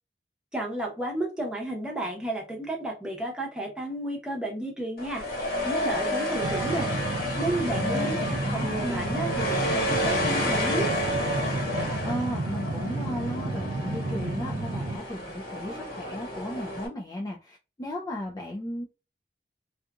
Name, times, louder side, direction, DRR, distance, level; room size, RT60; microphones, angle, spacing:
voice 1, 0.5-6.9 7.4-10.9, right 1 dB, 5° right, -1 dB, 0.8 m, -32 dB
sound 1, 5.0-16.9, left 1 dB, 55° left, 1.0 m, -30 dB
sound 2, 6.4-15.0, right 2 dB, 75° right, 0.5 m, -32 dB
voice 2, 7.8-9.2 11.7-18.8, left 1 dB, 20° left, -2 dB, 0.3 m, -35 dB
2.7 x 2.4 x 2.3 m, 0.30 s
head